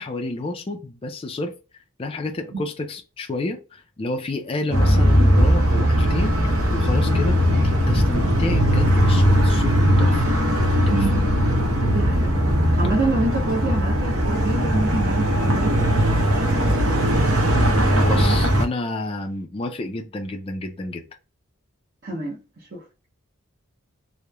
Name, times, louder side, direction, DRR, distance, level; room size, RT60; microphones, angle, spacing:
voice 1, 0.0-1.5 2.0-6.4 6.7-10.3 10.9-11.0 18.0-21.1, left 2 dB, 25° left, 0.3 m, -30 dB
sound 1, 4.7-18.7, equal, 75° right, 0.7 m, -19 dB
voice 2, 10.9-11.3 11.9-12.3 12.8-17.3 22.0-22.8, right 2 dB, 45° right, 0.7 m, -28 dB
2.9 x 2.1 x 2.3 m
head